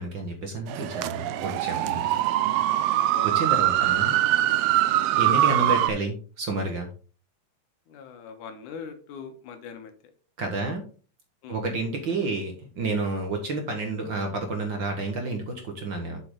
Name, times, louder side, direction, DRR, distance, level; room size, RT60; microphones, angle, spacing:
voice 1, 0.0-2.0 3.2-4.2 5.2-6.9 10.4-10.9 11.5-16.2, right 3 dB, 50° right, 3 dB, 1.8 m, -30 dB
sound 1, 0.7-5.9, right 13 dB, 80° right, 1.4 m, -23 dB
voice 2, 3.1-3.5 7.9-9.9 11.4-11.6, left 6 dB, 80° left, 7 dB, 2.7 m, -41 dB
7.6 x 6.7 x 3.8 m, 0.38 s
omnidirectional pair, 3.4 m